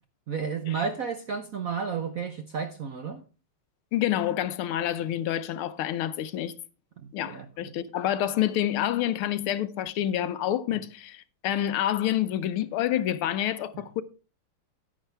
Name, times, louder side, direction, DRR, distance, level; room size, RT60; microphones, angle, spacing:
voice 1, 0.3-3.2 7.0-7.7 13.7-13.8, right 6 dB, 65° right, 0.8 m, -32 dB
voice 2, 3.9-6.5 7.1-14.0, left 12 dB, 80° left, 1.6 m, -28 dB
10.0 x 9.9 x 3.4 m
omnidirectional pair, 2.4 m